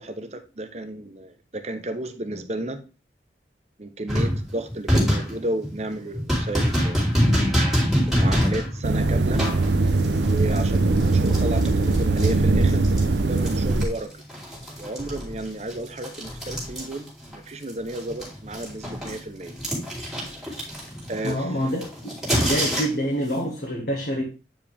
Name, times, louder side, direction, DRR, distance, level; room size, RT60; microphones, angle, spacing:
voice 1, 0.0-2.8 3.8-7.0 8.0-9.4 10.0-12.9 13.1-14.1 14.8-19.5 21.1-21.6, right 1 dB, 40° right, 0.9 m, -33 dB
sound 1, 4.1-13.0 13.4-17.4 17.6-23.2, equal, ahead, 2.8 m, -26 dB
sound 2, 8.8-13.9, right 2 dB, 85° right, 0.7 m, -21 dB
voice 2, 21.2-21.9 22.4-24.2, equal, 60° left, 1.8 m, -26 dB
9.0 x 5.0 x 3.5 m
head